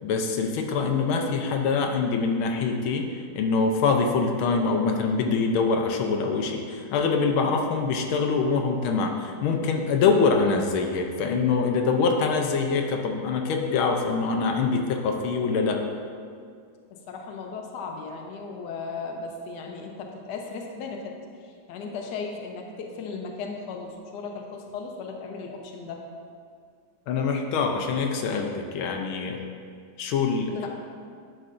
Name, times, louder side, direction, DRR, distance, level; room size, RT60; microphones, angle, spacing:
voice 1, 0.0-15.8 27.1-29.4 30.0-30.5, left 4 dB, 85° left, 3 dB, 1.5 m, -24 dB
voice 2, 16.9-21.1 21.4-26.0 30.5-30.7, left 4 dB, 65° left, 1 dB, 1.3 m, -36 dB
10.5 x 6.6 x 2.6 m, 2.2 s
omnidirectional pair, 2.2 m